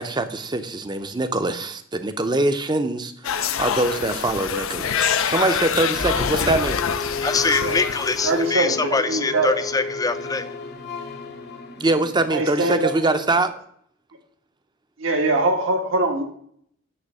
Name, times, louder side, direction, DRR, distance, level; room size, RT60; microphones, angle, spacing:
voice 1, 0.0-6.8 11.8-13.5, right 2 dB, 20° right, 0.7 m, -23 dB
sound 1, 3.2-8.5, left 7 dB, 85° left, 0.6 m, -25 dB
voice 2, 4.9-5.3 6.3-6.7 7.1-10.5, left 4 dB, 20° left, 0.5 m, -25 dB
sound 2, 5.9-12.9, left 3 dB, 55° left, 1.1 m, -33 dB
voice 3, 8.2-9.5 12.3-12.9 15.0-16.2, right 2 dB, 75° right, 1.6 m, -22 dB
9.8 x 3.3 x 6.7 m
head